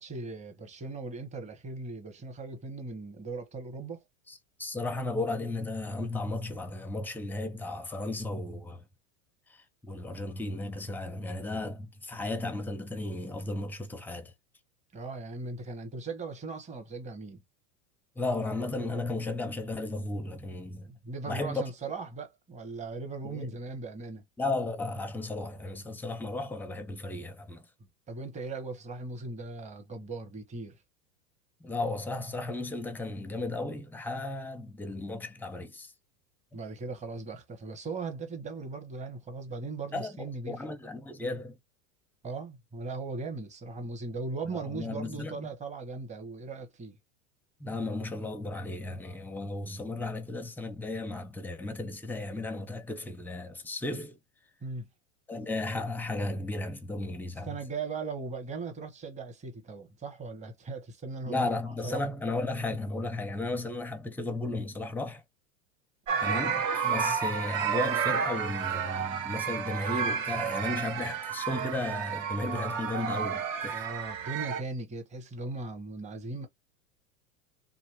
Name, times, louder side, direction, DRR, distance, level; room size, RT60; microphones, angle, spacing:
voice 1, 0.0-4.0 14.9-17.4 20.9-24.2 28.1-30.8 36.5-40.6 42.2-47.0 54.6-54.9 57.4-61.5 61.8-62.0 66.1-66.4 73.7-76.5, right 3 dB, 15° right, 0.9 m, -38 dB
voice 2, 4.3-8.8 9.5-14.3 18.2-20.9 21.3-21.6 23.2-23.6 24.4-27.7 31.6-35.9 39.9-41.6 44.5-45.5 47.6-54.2 55.3-57.6 61.3-65.2 66.2-73.9, left 2 dB, 5° left, 0.4 m, -34 dB
sound 1, 66.1-74.6, right 7 dB, 65° right, 1.1 m, -31 dB
2.7 x 2.5 x 3.2 m
hypercardioid pair, 105°, 41 cm